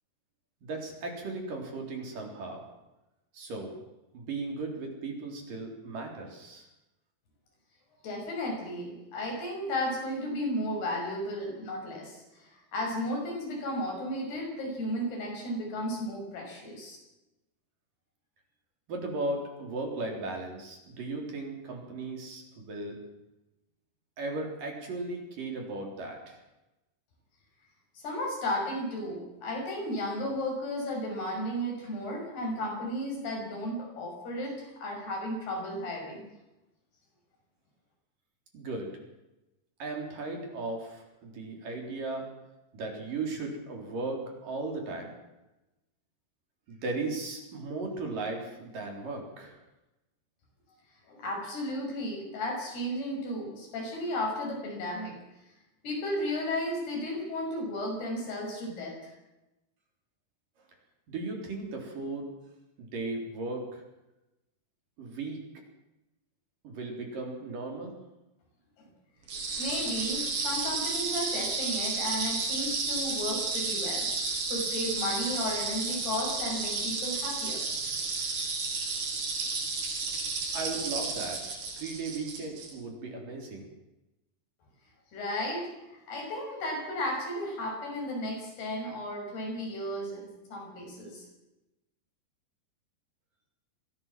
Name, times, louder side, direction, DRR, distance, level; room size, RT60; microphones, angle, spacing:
voice 1, 0.6-2.6 3.3-3.7 4.1-6.6 18.9-23.0 24.2-26.4 38.5-38.9 39.8-42.3 42.7-45.1 46.7-49.6 61.1-62.3 62.8-63.8 65.0-65.4 66.6-67.9 80.5-81.4 81.8-83.7, right 3 dB, 50° right, 1 dB, 5.3 m, -36 dB
voice 2, 8.0-17.0 27.9-36.2 51.1-55.2 55.8-59.1 69.6-74.1 74.5-77.6 85.1-91.3, left 1 dB, 65° left, 0 dB, 8.1 m, -34 dB
sound 1, 69.3-82.7, right 4 dB, 90° right, 7.8 m, -32 dB
23.0 x 16.5 x 7.5 m, 0.97 s
omnidirectional pair, 4.9 m